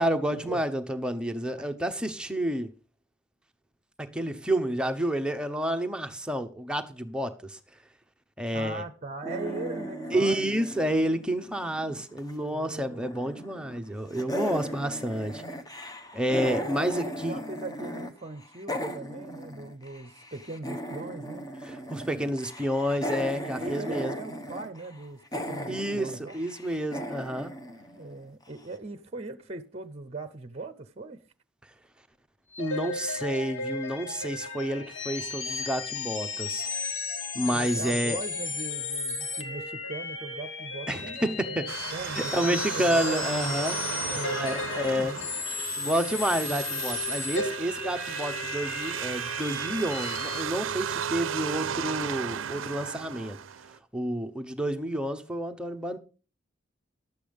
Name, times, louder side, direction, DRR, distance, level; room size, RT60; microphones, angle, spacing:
voice 1, 0.0-2.7 4.0-7.6 8.4-8.8 10.1-15.4 16.1-17.4 21.6-24.1 25.7-27.5 32.6-36.7 37.3-38.2 40.9-41.7 42.1-45.2 45.8-53.4 53.6-56.0, right 1 dB, 5° right, 0.9 m, -29 dB
voice 2, 8.5-10.5 12.4-13.1 16.6-21.5 23.5-26.4 27.9-31.2 37.4-41.6 41.9-43.3 44.1-45.3 46.4-47.0, right 2 dB, 35° right, 0.8 m, -40 dB
sound 1, 9.2-12.3 12.6-13.8 14.1-18.1 18.4-28.4, equal, 20° left, 1.1 m, -37 dB
sound 2, 32.5-50.4, left 4 dB, 70° left, 1.6 m, -34 dB
sound 3, 41.7-53.8, right 8 dB, 80° right, 0.5 m, -35 dB
11.5 x 8.4 x 5.2 m
head